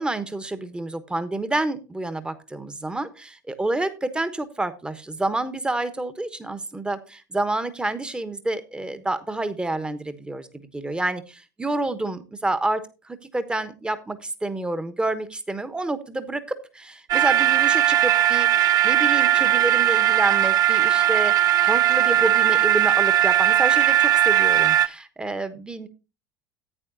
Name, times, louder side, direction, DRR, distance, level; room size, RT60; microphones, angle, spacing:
voice 1, 0.0-12.8 13.1-16.4 16.7-18.5 18.8-25.9, right 2 dB, 10° right, 12 dB, 1.2 m, -28 dB
sound 1, 17.1-24.9, right 11 dB, 40° right, 0.6 m, -19 dB
14.5 x 9.3 x 2.6 m, 0.30 s
figure-of-eight pair, 70°, 10 cm